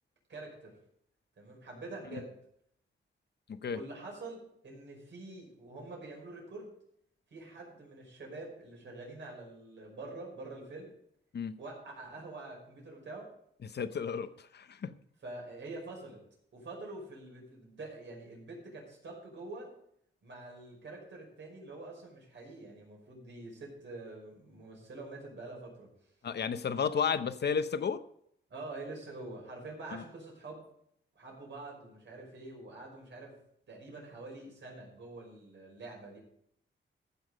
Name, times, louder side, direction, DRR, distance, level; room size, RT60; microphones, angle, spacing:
voice 1, 0.3-0.7 1.4-2.3 3.7-6.7 7.3-10.9 11.6-13.3 15.2-16.2 16.5-19.7 20.2-26.1 28.5-30.6 31.2-33.3 33.7-36.2, right 2 dB, 70° right, -2 dB, 5.5 m, -46 dB
voice 2, 13.6-14.9 26.2-28.0 29.9-30.0, left 6 dB, 60° left, 12 dB, 0.8 m, -33 dB
14.5 x 7.2 x 5.2 m, 0.71 s
cardioid pair, 95°, 20 cm